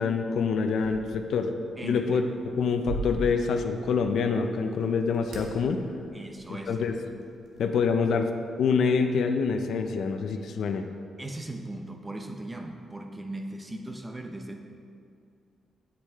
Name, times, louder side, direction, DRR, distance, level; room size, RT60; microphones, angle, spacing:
voice 1, 0.0-1.5 1.8-2.2 2.6-5.8 6.7-6.9 7.6-8.3 8.6-10.9, left 5 dB, 75° left, 6 dB, 0.6 m, -26 dB
sound 1, 0.8-7.8, right 1 dB, 80° right, 1.4 m, -42 dB
voice 2, 1.8-2.2 6.1-6.8 11.2-14.6, right 1 dB, 20° right, 4 dB, 0.8 m, -38 dB
8.3 x 8.3 x 3.6 m, 2.4 s
cardioid pair, 95°, 0 cm